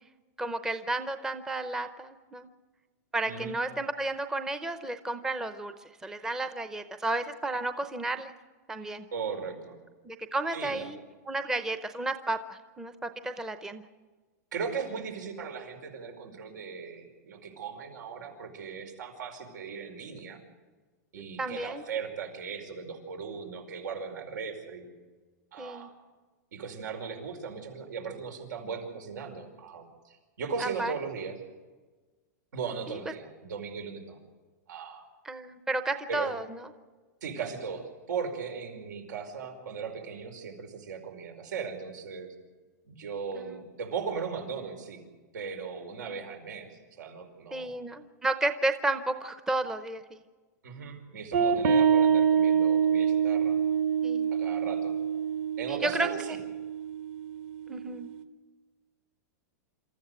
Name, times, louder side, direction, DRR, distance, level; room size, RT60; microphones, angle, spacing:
voice 1, 0.4-2.5 3.1-5.7 6.0-8.3 8.7-9.0 10.0-11.0 11.3-13.8 21.4-21.8 25.6-25.9 30.6-30.9 32.9-33.0 35.2-36.6 43.3-43.6 47.5-50.2 54.0-54.3 55.7-56.1 57.7-58.1, right 2 dB, 5° right, 9 dB, 0.7 m, -32 dB
voice 2, 9.1-9.8 10.5-10.9 14.5-20.4 21.1-24.9 25.5-25.9 26.5-31.4 32.5-34.2 34.7-35.0 36.1-36.3 37.2-42.3 42.8-45.0 45.3-47.7 50.6-53.6 54.3-54.9 55.6-56.4, right 5 dB, 90° right, 4 dB, 5.1 m, -38 dB
sound 1, 51.3-58.2, right 7 dB, 45° right, 1.3 m, -26 dB
27.0 x 14.0 x 8.0 m, 1.3 s
supercardioid pair, 165°, 10 cm